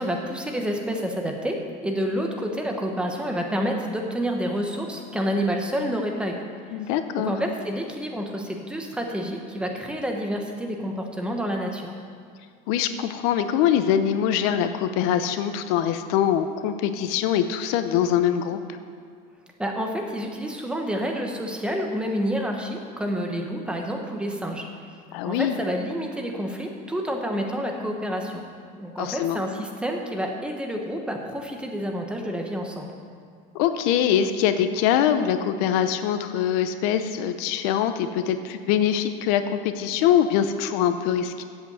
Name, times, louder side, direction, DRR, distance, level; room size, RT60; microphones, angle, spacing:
voice 1, 0.0-1.6 1.8-6.4 7.2-11.9 19.6-24.7 25.2-28.4 28.7-33.0, equal, 5° right, 2 dB, 1.0 m, -28 dB
voice 2, 6.7-7.3 12.7-18.6 25.1-25.6 29.0-29.4 33.5-41.4, left 9 dB, 85° left, 9 dB, 0.7 m, -23 dB
8.1 x 8.0 x 8.0 m, 2.2 s
cardioid pair, 160°, 18 cm